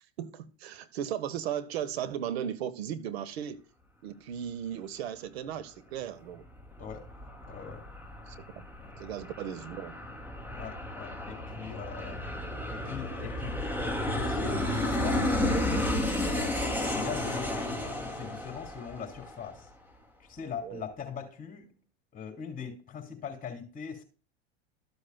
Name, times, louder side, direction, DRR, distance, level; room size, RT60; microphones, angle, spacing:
voice 1, 0.2-3.6 4.0-6.4 8.3-8.4 9.0-9.9 20.6-20.8, right 9 dB, 80° right, 1.1 m, -36 dB
Aircraft, 6.4-19.6, left 1 dB, 5° right, 2.5 m, -32 dB
voice 2, 7.5-7.8 8.8-9.2 10.5-12.2 12.7-13.5 13.8-15.8 16.2-19.7 20.3-21.7 22.1-24.0, left 6 dB, 25° left, 3.6 m, -41 dB
14.0 x 7.9 x 2.3 m
hypercardioid pair, 100°, 32 cm